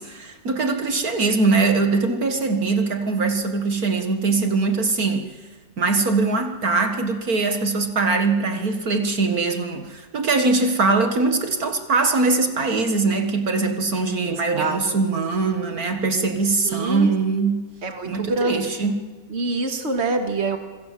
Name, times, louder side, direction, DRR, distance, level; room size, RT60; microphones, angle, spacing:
voice 1, 0.0-5.3 5.8-17.7 18.0-18.9, right 3 dB, 65° right, 6 dB, 2.2 m, -22 dB
voice 2, 14.3-15.0 16.6-17.1 17.8-18.8 19.3-20.6, right 3 dB, 40° right, 6 dB, 2.2 m, -26 dB
26.0 x 22.5 x 7.6 m, 1.3 s
omnidirectional pair, 1.7 m